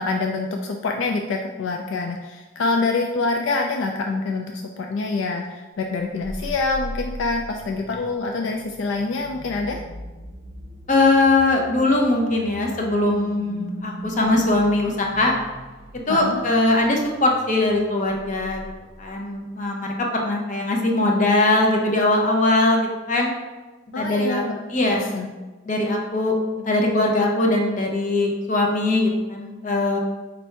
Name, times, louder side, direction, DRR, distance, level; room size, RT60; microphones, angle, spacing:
voice 1, 0.0-9.8 16.1-16.4 23.9-24.6 24.9-25.3, left 3 dB, 70° left, 2 dB, 0.3 m, -26 dB
sound 1, 6.0-19.5, right 1 dB, 55° right, 0.6 m, -39 dB
voice 2, 10.9-15.3 16.1-18.7 19.0-23.3 24.0-24.4 24.7-25.1 25.7-26.4 26.7-30.0, left 2 dB, 40° left, 0 dB, 0.7 m, -21 dB
4.4 x 2.6 x 4.4 m, 1.2 s
head